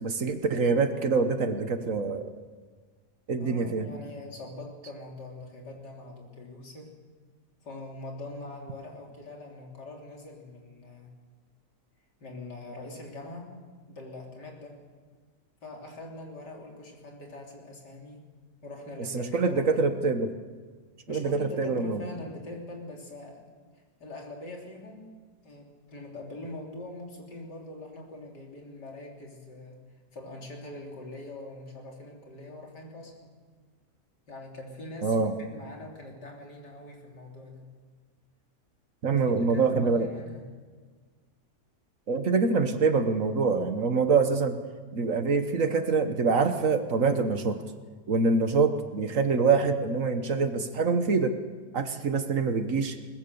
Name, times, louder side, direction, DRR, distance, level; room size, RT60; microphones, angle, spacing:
voice 1, 0.0-2.3 3.3-3.8 19.1-20.3 21.1-22.0 35.0-35.3 39.0-40.1 42.1-44.6 44.9-47.6 48.1-51.3 51.7-53.0, right 4 dB, 55° right, 8 dB, 1.5 m, -25 dB
voice 2, 3.3-6.9 7.6-11.1 12.2-13.6 13.9-14.8 15.6-18.3 18.6-19.9 21.1-23.5 23.7-25.1 25.4-29.8 30.1-33.3 34.3-37.7 39.1-40.5, left 2 dB, 85° left, 0 dB, 4.0 m, -43 dB
21.5 x 20.0 x 7.0 m, 1.5 s
omnidirectional pair, 1.8 m